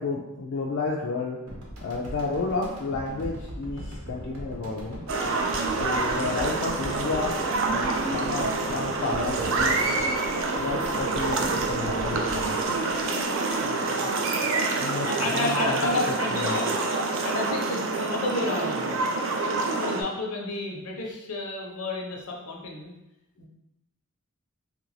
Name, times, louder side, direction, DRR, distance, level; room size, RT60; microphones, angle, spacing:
voice 1, 0.0-1.4 1.8-5.0 5.7-7.3 7.7-9.9 10.6-12.6 14.8-15.8 16.3-16.6, left 3 dB, 55° left, -1 dB, 0.4 m, -31 dB
sound 1, 1.5-13.9, equal, 80° right, 0.8 m, -40 dB
sound 2, 5.1-20.0, right 3 dB, 65° right, 0.4 m, -27 dB
voice 2, 10.4-10.8 13.6-14.1 14.4-14.5 15.0-19.1 19.7-22.9 23.4-23.5, left 2 dB, 80° left, 0 dB, 0.7 m, -31 dB
3.1 x 2.5 x 3.1 m, 0.92 s
head